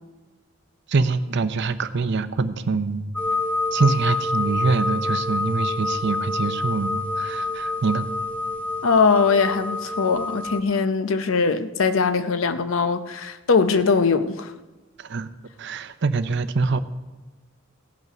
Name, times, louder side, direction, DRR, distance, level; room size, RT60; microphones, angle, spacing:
voice 1, 0.9-3.1 3.7-8.1 15.0-15.3 15.6-16.8, right 4 dB, 60° right, 0.6 m, -24 dB
sound 1, 3.2-10.6, left 2 dB, 5° left, 0.4 m, -27 dB
voice 2, 8.8-14.5, left 5 dB, 85° left, 0.7 m, -21 dB
16.0 x 5.5 x 6.0 m
head